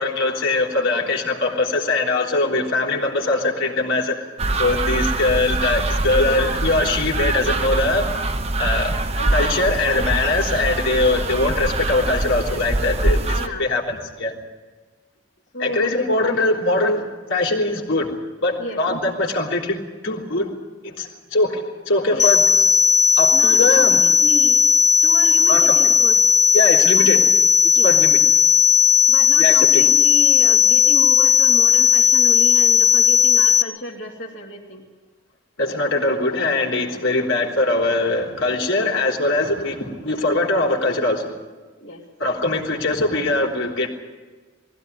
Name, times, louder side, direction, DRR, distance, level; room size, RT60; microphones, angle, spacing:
voice 1, 0.0-4.3 4.6-8.1 8.6-8.9 9.3-14.3 15.6-18.1 18.4-20.5 20.8-22.6 23.2-24.0 25.5-25.8 26.5-27.3 27.8-28.2 29.4-29.8 35.6-41.4 42.2-43.9, left 2 dB, 85° left, -1 dB, 3.7 m, -22 dB
sound 1, 4.4-13.5, right 2 dB, 35° right, 1.0 m, -23 dB
voice 2, 6.2-6.7 9.1-10.2 11.1-11.2 13.4-13.7 15.5-16.0 18.6-18.8 22.1-22.4 23.3-24.6 25.0-26.2 27.0-27.1 27.7-28.0 29.1-34.8 41.8-42.0, left 1 dB, 65° left, -4 dB, 3.0 m, -32 dB
sound 2, 22.2-33.6, left 7 dB, 20° left, 0.6 m, -15 dB
21.0 x 16.0 x 9.8 m, 1.4 s
head